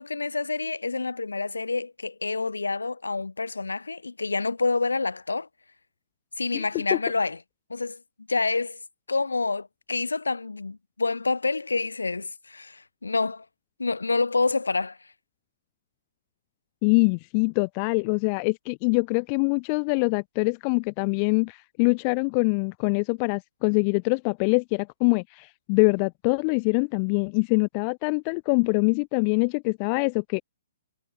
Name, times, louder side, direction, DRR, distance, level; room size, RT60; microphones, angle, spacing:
voice 1, 0.0-5.5 6.4-7.4 7.7-8.0 8.3-8.8 9.1-13.5 13.8-15.0, left 3 dB, 70° left, 7.3 m, -27 dB
voice 2, 16.8-30.4, left 36 dB, 30° left, 1.1 m, -24 dB
figure-of-eight pair, 125°, 0 cm